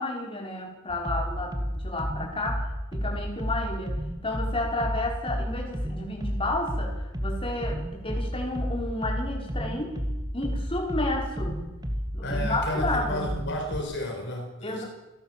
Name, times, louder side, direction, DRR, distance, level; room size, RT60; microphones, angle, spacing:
voice 1, 0.0-4.0 4.2-7.0 7.2-10.0 10.3-11.6 12.1-13.4 14.6-14.8, left 2 dB, 25° left, 0 dB, 5.3 m, -31 dB
sound 1, 0.9-13.8, equal, 20° right, 2.2 m, -32 dB
voice 2, 12.2-14.8, left 1 dB, 55° left, 3 dB, 4.9 m, -32 dB
29.5 x 12.0 x 7.7 m, 1.1 s
head